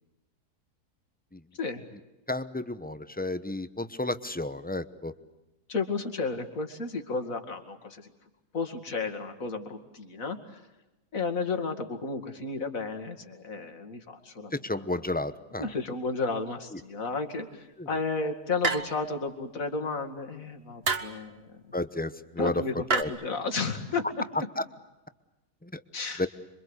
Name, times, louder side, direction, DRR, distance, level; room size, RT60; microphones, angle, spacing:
voice 1, 2.3-5.1 14.5-15.7 16.7-16.8 17.8-17.9 21.7-22.6 23.0-23.1 24.6-24.7 25.6-25.8 26.2-26.3, left 2 dB, 10° left, 12 dB, 0.7 m, -32 dB
voice 2, 5.7-8.1 8.5-10.6 11.1-14.6 15.6-21.8 22.4-24.2 25.9-26.3, left 4 dB, 60° left, 6 dB, 2.8 m, -33 dB
sound 1, 18.6-19.2 20.8-21.2 22.9-23.0, right 4 dB, 40° right, 1.6 m, -28 dB
27.0 x 24.5 x 8.1 m, 1.0 s
omnidirectional pair, 1.7 m